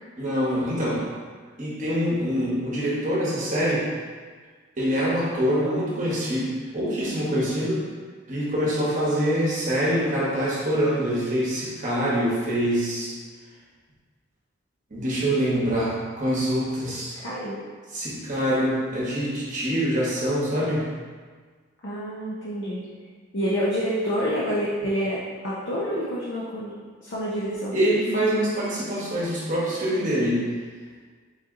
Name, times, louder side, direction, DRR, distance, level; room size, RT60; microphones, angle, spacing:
voice 1, 0.2-1.0 1.6-3.8 4.8-7.8 8.3-13.1 14.9-17.1 17.9-20.9 27.7-30.5, equal, 35° right, -7 dB, 1.0 m, -25 dB
voice 2, 17.1-17.6 21.8-22.8 23.3-26.7 27.0-27.8, equal, 60° left, -7 dB, 0.6 m, -28 dB
3.9 x 2.8 x 3.6 m, 1.5 s
head